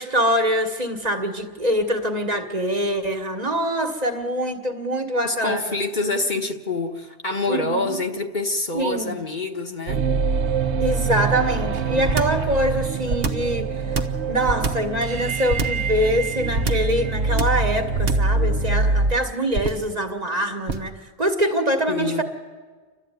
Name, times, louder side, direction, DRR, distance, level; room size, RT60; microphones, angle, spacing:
voice 1, 0.0-5.6 7.5-8.0 8.7-9.2 10.8-14.0 14.3-22.2, equal, 40° right, 4 dB, 1.8 m, -24 dB
voice 2, 5.2-10.0 11.3-12.4 21.9-22.2, left 2 dB, 45° left, 3 dB, 1.5 m, -27 dB
sound 1, 9.9-19.1, right 4 dB, 90° right, 1.2 m, -24 dB
sound 2, 12.1-12.5 13.1-13.5 13.9-14.9 15.5-15.9 16.6-17.0 17.4-17.7 18.0-18.4 19.5-19.9 20.7-21.0, right 3 dB, 60° right, 1.2 m, -25 dB
29.5 x 12.5 x 9.2 m, 1.5 s
omnidirectional pair, 1.1 m